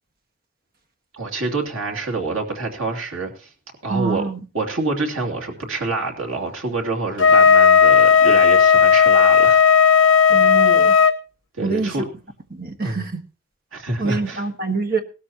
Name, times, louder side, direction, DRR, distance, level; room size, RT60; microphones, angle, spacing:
voice 1, 1.1-3.5 3.8-4.3 4.5-9.6 11.6-12.1 12.8-13.0 13.7-14.4, right 3 dB, 85° right, 2.8 m, -26 dB
voice 2, 3.9-4.4 10.3-11.0 11.6-12.0 12.5-13.2 14.0-15.0, right 4 dB, 45° right, 1.5 m, -25 dB
Wind instrument woodwind instrument, 7.2-11.2, left 6 dB, 70° left, 1.0 m, -13 dB
18.5 x 13.0 x 2.9 m
head